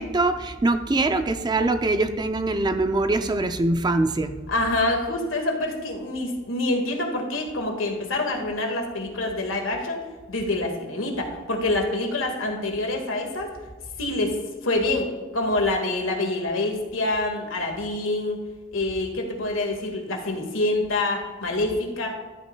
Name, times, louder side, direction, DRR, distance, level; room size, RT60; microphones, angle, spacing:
voice 1, 0.0-4.4, right 2 dB, 20° right, 8 dB, 0.4 m, -23 dB
voice 2, 4.5-10.0 10.3-13.5 14.0-14.4 14.6-15.1 15.3-18.4 18.7-22.1, left 2 dB, 75° left, 2 dB, 1.7 m, -26 dB
12.5 x 8.5 x 2.2 m, 1.4 s
head